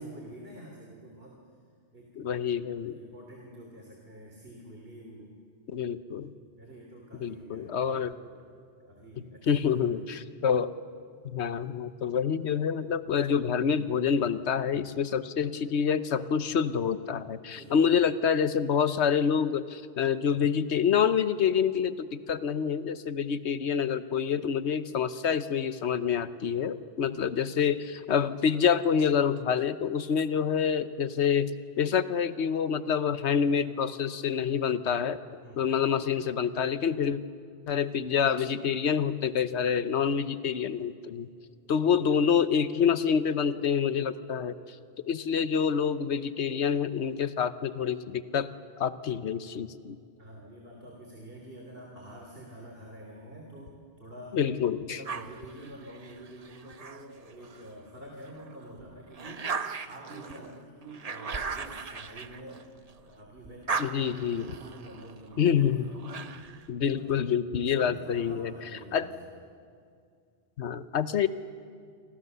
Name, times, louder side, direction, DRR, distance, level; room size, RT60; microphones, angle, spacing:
voice 1, 0.0-1.4 1.9-2.3 2.7-5.3 6.1-8.3 8.8-10.1 17.5-18.1 35.4-35.6 41.7-41.9 50.2-54.4 54.9-62.7 63.0-66.4 66.9-67.2 67.7-69.4, right 1 dB, 60° right, 0 dB, 3.4 m, -47 dB
voice 2, 2.2-3.0 5.7-6.3 7.2-8.1 9.5-10.7 11.2-35.2 35.6-37.2 37.7-41.3 41.7-44.5 45.0-48.5 48.8-50.0 54.3-55.0 63.8-64.5 65.4-65.9 66.7-68.5 68.9-69.1 70.6-71.3, left 7 dB, 85° left, 13 dB, 1.2 m, -27 dB
sound 1, 55.0-57.7 58.2-63.1 63.4-66.7, right 4 dB, 40° right, 0.9 m, -38 dB
27.5 x 24.5 x 6.9 m, 2.3 s
omnidirectional pair, 1.1 m